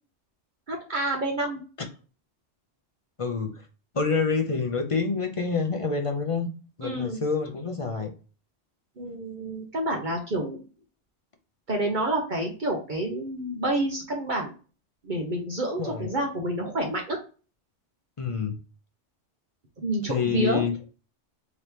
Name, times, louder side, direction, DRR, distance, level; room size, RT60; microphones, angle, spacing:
voice 1, 0.7-1.6 6.8-7.2 9.0-10.6 11.7-14.5 15.0-17.2 19.8-20.6, right 1 dB, 45° right, 1.0 m, -28 dB
voice 2, 3.2-3.7 3.9-6.5 6.8-8.1 15.8-16.1 18.2-18.6 20.1-20.7, left 5 dB, 45° left, 0.4 m, -27 dB
3.9 x 3.3 x 2.9 m
omnidirectional pair, 1.2 m